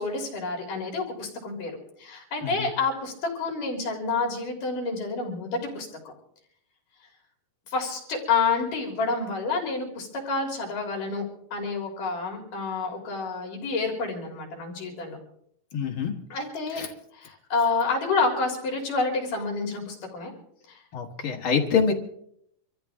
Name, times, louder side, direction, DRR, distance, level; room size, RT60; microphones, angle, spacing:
voice 1, 0.0-6.1 7.7-15.2 16.3-16.8 17.1-20.3 20.7-20.8, left 4 dB, 70° left, 1 dB, 4.7 m, -29 dB
voice 2, 15.7-16.1 16.7-16.9 20.9-21.9, left 6 dB, 45° left, 2 dB, 2.1 m, -25 dB
25.5 x 14.5 x 3.6 m, 0.69 s
omnidirectional pair, 3.9 m